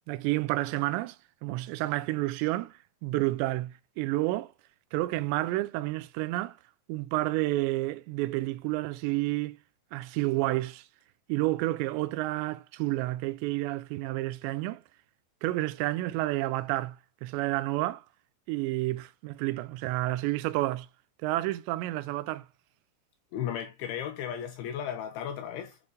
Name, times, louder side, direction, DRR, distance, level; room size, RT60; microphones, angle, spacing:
voice 1, 0.1-1.2 1.4-4.5 4.9-6.6 6.9-9.6 9.9-10.9 11.3-14.8 15.4-18.0 18.5-20.9 21.2-22.5, right 18 dB, 90° right, 2.8 m, -30 dB
voice 2, 23.3-25.8, left 9 dB, 85° left, 2.2 m, -35 dB
8.1 x 3.3 x 3.8 m
omnidirectional pair, 4.9 m